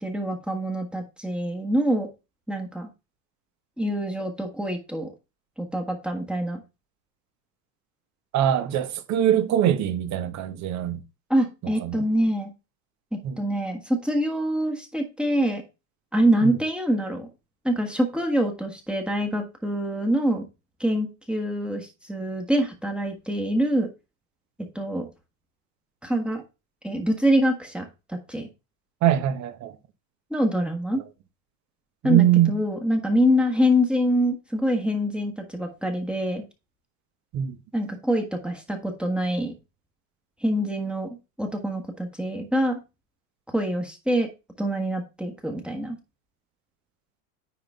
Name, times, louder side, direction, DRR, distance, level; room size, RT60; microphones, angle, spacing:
voice 1, 0.0-2.1 2.5-2.9 3.8-5.1 5.6-6.6 11.3-12.5 13.1-15.6 16.1-17.3 17.6-20.4 20.8-23.9 24.7-25.1 26.0-26.4 26.8-28.5 30.3-31.0 32.0-36.4 37.7-39.5 40.4-41.1 41.4-42.8 43.5-44.3 44.6-46.0, equal, ahead, 1.4 m, -25 dB
voice 2, 8.3-11.0 11.8-12.0 13.2-13.4 16.4-16.5 29.0-29.7 32.0-32.5 37.3-37.5, right 11 dB, 35° right, 1.1 m, -22 dB
9.8 x 3.8 x 3.6 m
supercardioid pair, 120°, 47 cm